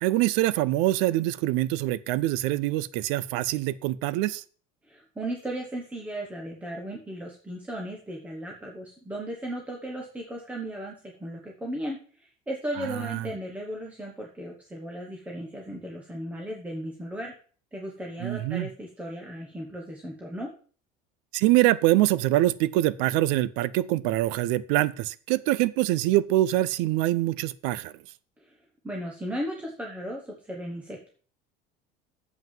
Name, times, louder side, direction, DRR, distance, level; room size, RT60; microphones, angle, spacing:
voice 1, 0.0-4.4 12.8-13.3 18.2-18.7 21.3-27.9, right 16 dB, 80° right, 19 dB, 0.5 m, -24 dB
voice 2, 4.8-17.3 17.7-20.5 28.4-28.6 28.8-31.1, right 1 dB, 10° right, -1 dB, 1.1 m, -36 dB
7.5 x 5.6 x 7.4 m, 0.42 s
cardioid pair, 175°, 18 cm